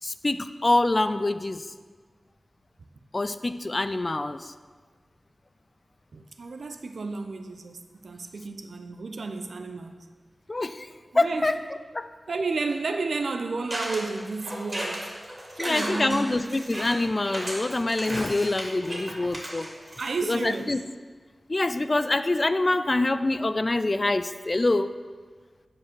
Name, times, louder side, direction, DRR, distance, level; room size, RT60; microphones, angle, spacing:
voice 1, 0.0-1.7 3.1-4.5 10.5-10.9 11.1-11.6 11.9-12.1 15.6-19.7 20.2-20.8 21.5-24.9, left 2 dB, 35° left, 11 dB, 0.4 m, -25 dB
voice 2, 6.1-9.9 11.1-11.5 12.3-15.1 15.5-16.2 20.0-20.7, right 3 dB, 80° right, 7 dB, 0.7 m, -32 dB
sound 1, 13.7-20.6, equal, 20° right, 2.6 m, -35 dB
9.9 x 4.7 x 6.1 m, 1.5 s
wide cardioid pair, 75°, 0 cm